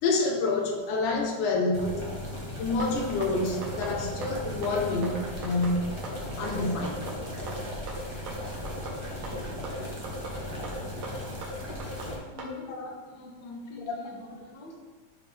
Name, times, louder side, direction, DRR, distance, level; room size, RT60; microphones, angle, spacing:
voice 1, 0.0-2.0 2.6-5.9 6.4-7.1 12.7-12.9 13.9-14.0, left 3 dB, 75° left, 1 dB, 2.5 m, -28 dB
sound 1, 1.7-12.2, left 1 dB, 20° right, 0.7 m, -37 dB
sound 2, 2.8-12.6, right 2 dB, 65° right, 2.5 m, -39 dB
voice 2, 11.6-14.8, left 2 dB, 55° left, 0 dB, 1.3 m, -45 dB
12.0 x 4.9 x 3.4 m, 1.4 s
omnidirectional pair, 3.6 m